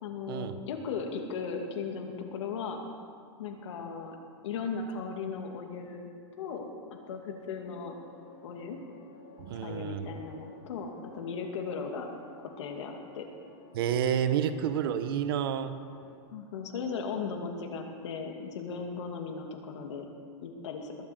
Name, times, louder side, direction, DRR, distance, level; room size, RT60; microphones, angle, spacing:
voice 1, 0.0-2.8 3.4-4.2 4.4-6.1 6.4-8.0 8.4-8.8 9.6-12.1 12.6-13.3 16.3-20.1 20.4-21.0, left 5 dB, 80° left, 3 dB, 2.5 m, -37 dB
sound 1, 7.6-16.2, left 3 dB, 40° left, 2.0 m, -53 dB
voice 2, 9.4-10.1 13.7-15.7, right 9 dB, 55° right, 11 dB, 0.9 m, -29 dB
21.0 x 7.6 x 8.0 m, 2.2 s
supercardioid pair, 180°, 15 cm